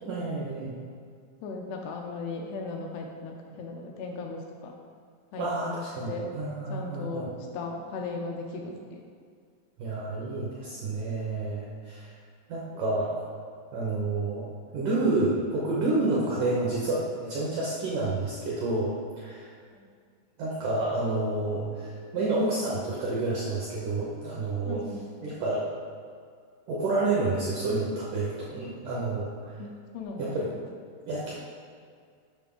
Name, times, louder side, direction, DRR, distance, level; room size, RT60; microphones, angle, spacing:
voice 1, 0.0-0.7 5.4-7.3 9.8-12.1 12.5-13.2 13.7-14.4 14.7-19.5 20.4-24.8 25.2-25.6 26.7-29.5 30.2-30.5 31.1-31.3, right 2 dB, 75° right, -5 dB, 1.9 m, -29 dB
voice 2, 1.4-4.7 5.3-6.3 6.7-9.0 19.7-19.9 24.7-25.1 29.6-30.5, left 3 dB, 85° left, 1 dB, 2.5 m, -37 dB
8.5 x 6.1 x 3.7 m, 2.1 s
omnidirectional pair, 5.0 m